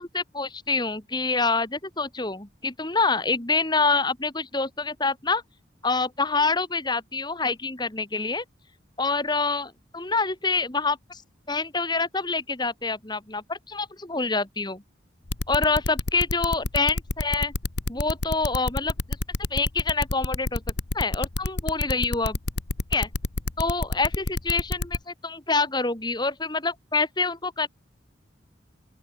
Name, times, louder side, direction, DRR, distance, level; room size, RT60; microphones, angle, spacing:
voice 1, 0.0-5.4 5.8-8.4 9.0-11.2 11.5-14.8 15.5-17.5 17.9-18.9 19.5-20.6 20.9-22.4 22.9-23.1 23.6-27.7, left 3 dB, 20° left, 1.9 m, -26 dB
sound 1, 15.3-25.0, left 2 dB, 60° left, 1.2 m, -28 dB
open air
head